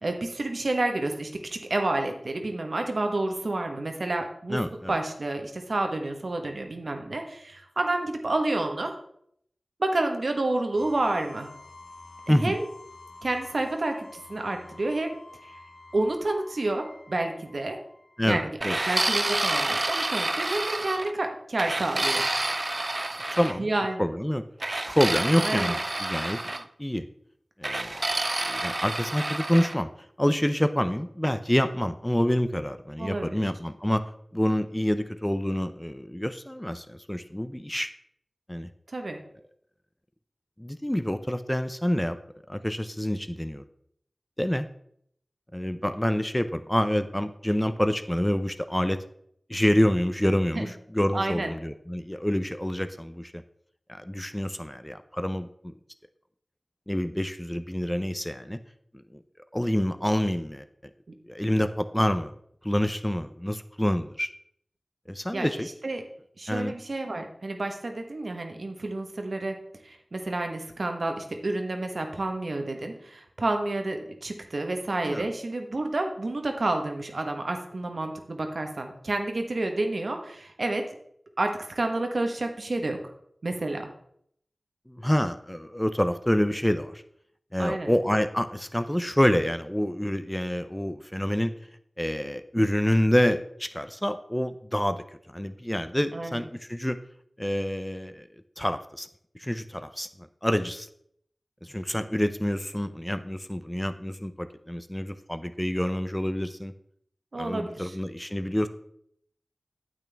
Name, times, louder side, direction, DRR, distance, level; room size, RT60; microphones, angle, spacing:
voice 1, 0.0-8.9 9.8-11.5 12.3-12.7 13.2-15.2 15.4-15.5 15.9-17.8 18.2-22.3 23.6-24.2 25.4-25.8 33.0-33.4 38.9-39.2 50.5-50.7 51.1-51.5 65.3-66.0 66.4-69.6 69.8-80.9 81.4-83.0 83.4-83.9 87.6-87.9 96.1-96.4 107.3-107.9, right 2 dB, 65° right, 4 dB, 1.2 m, -29 dB
voice 2, 4.5-4.9 12.3-12.6 18.2-18.8 23.3-23.7 24.0-24.4 24.9-27.0 27.6-28.0 28.5-29.9 30.2-34.0 34.3-37.9 38.5-38.7 40.6-42.2 42.5-43.6 44.4-44.7 45.5-49.0 49.5-53.4 53.9-55.7 56.9-58.6 59.1-59.2 59.5-60.6 61.3-62.4 62.6-64.3 65.1-65.7 66.5-66.7 75.1-75.3 84.9-87.0 87.5-91.5 92.0-95.0 95.3-97.0 97.4-98.3 98.6-99.1 99.4-100.9 101.6-106.7 107.4-108.7, equal, 10° left, 10 dB, 0.5 m, -27 dB
sound 1, 10.8-18.5, left 2 dB, 75° left, 1.5 m, -49 dB
sound 2, 18.6-21.1 21.6-23.5 24.6-26.6 27.6-29.8, right 2 dB, 40° right, 0.4 m, -28 dB
9.1 x 8.3 x 3.4 m, 0.70 s
wide cardioid pair, 55°, 0 cm